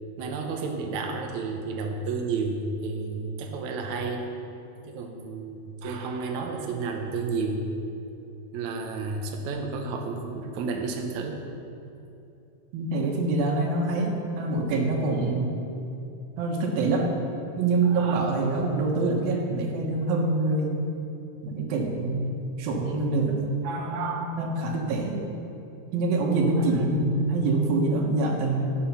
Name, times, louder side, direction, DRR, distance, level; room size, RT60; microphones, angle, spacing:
voice 1, 0.2-4.3 4.8-7.7 8.5-11.4 17.9-18.2 23.6-24.4 26.6-27.1, right 4 dB, 85° right, 2 dB, 1.6 m, -32 dB
voice 2, 12.7-15.7 16.4-17.1 17.6-20.8 21.4-23.5 23.9-25.2 25.9-28.8, right 2 dB, 65° right, 1 dB, 2.9 m, -25 dB
16.0 x 8.5 x 5.7 m, 2.7 s
omnidirectional pair, 5.0 m